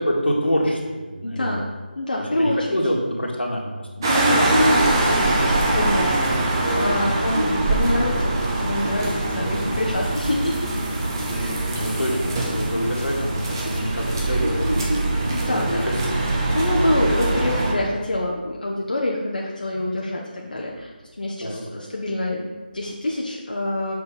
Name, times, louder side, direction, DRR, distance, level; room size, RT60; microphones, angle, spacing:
voice 1, 0.0-1.6 2.2-4.1 7.0-7.2 11.7-14.9 15.5-16.4 21.4-21.6, equal, 85° left, -1 dB, 1.9 m, -26 dB
voice 2, 1.2-1.6 2.0-2.8 4.0-8.3 8.6-10.6 11.4-11.7 15.3-15.8 16.5-20.9 21.2-23.9, left 1 dB, 55° left, -2 dB, 0.9 m, -26 dB
sound 1, 4.0-17.7, right 2 dB, 25° right, 1.0 m, -22 dB
6.6 x 4.5 x 5.4 m, 1.3 s
figure-of-eight pair, 160°, 6 cm